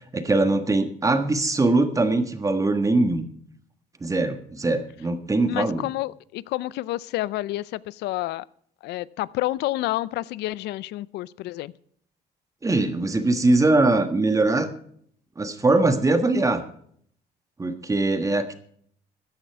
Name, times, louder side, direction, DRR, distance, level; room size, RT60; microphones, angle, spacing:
voice 1, 0.1-3.2 4.0-5.9 12.6-14.7 15.4-16.6 17.6-18.5, right 2 dB, 20° right, 9 dB, 1.5 m, -22 dB
voice 2, 5.5-8.4 8.8-11.7, left 16 dB, 80° left, 21 dB, 0.5 m, -29 dB
14.5 x 10.5 x 4.7 m, 0.62 s
cardioid pair, 110°, 17 cm